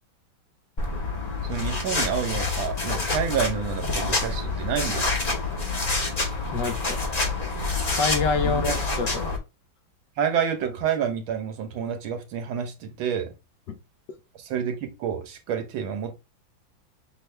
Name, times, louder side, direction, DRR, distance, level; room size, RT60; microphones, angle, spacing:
sound 1, 0.8-9.4, left 3 dB, 30° left, 0.7 m, -27 dB
voice 1, 1.4-5.2 8.4-8.7 10.2-13.3 14.3-16.1, right 8 dB, 80° right, 1.6 m, -29 dB
voice 2, 6.5-7.1 7.9-9.3 13.7-13.8, left 4 dB, 70° left, 1.3 m, -27 dB
6.6 x 2.5 x 3.2 m
omnidirectional pair, 2.2 m